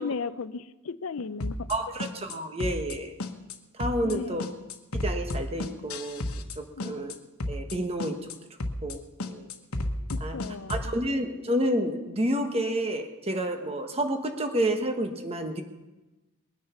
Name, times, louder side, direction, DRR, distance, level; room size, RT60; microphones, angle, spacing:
voice 1, 0.0-1.7 4.0-4.4 6.8-7.0 10.1-10.9, left 5 dB, 70° left, 15 dB, 0.6 m, -35 dB
sound 1, 1.4-1.8 2.0-2.4 2.6-3.0 3.2-3.6 3.8-4.2 4.4-6.6 6.8-7.2 7.4-7.8 8.0-8.4 8.6-9.0 9.2-10.9, left 1 dB, 90° left, 1.3 m, -32 dB
voice 2, 1.7-3.1 3.7-4.5 5.0-6.2 6.6-7.1 7.5-8.3 8.8-9.0 9.3-9.5 10.2-10.4 10.7-15.6, right 1 dB, 30° right, 6 dB, 1.4 m, -29 dB
21.0 x 9.7 x 5.9 m, 1.1 s
head